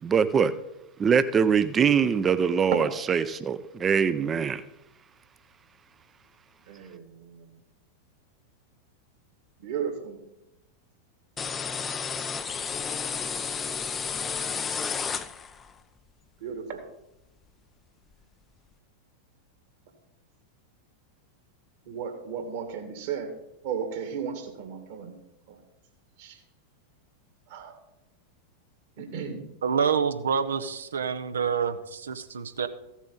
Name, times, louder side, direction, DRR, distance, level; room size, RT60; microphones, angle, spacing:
voice 1, 0.0-0.5 1.0-4.6, right 6 dB, 20° right, 15 dB, 0.6 m, -23 dB
voice 2, 6.7-7.6 9.6-10.2 16.4-16.8 21.9-23.3 23.6-25.2 25.5-25.6 26.2-26.4 27.5-27.8 29.0-29.4, right 7 dB, 55° right, 5 dB, 2.0 m, -35 dB
sound 1, 11.4-15.7, left 6 dB, 20° left, 0.5 m, -32 dB
voice 3, 29.6-32.7, right 6 dB, 70° right, 10 dB, 0.7 m, -27 dB
15.0 x 7.2 x 4.0 m, 0.89 s
figure-of-eight pair, 90°, 0 cm